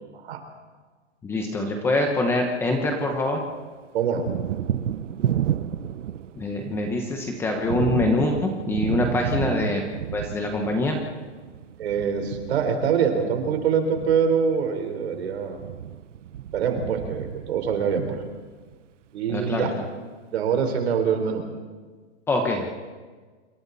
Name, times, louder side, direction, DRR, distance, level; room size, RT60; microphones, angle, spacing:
voice 1, 1.2-3.4 6.4-11.0 19.3-19.8 22.3-22.7, left 2 dB, 5° left, 2 dB, 1.0 m, -25 dB
Thunder, 2.0-3.2 3.5-18.7, right 10 dB, 85° right, 1.0 m, -32 dB
voice 2, 3.9-4.3 9.4-9.6 11.8-15.6 16.5-18.2 19.1-19.7 20.3-21.5, right 6 dB, 60° right, 5 dB, 4.3 m, -24 dB
27.5 x 23.5 x 4.2 m, 1.4 s
hypercardioid pair, 175°, 36 cm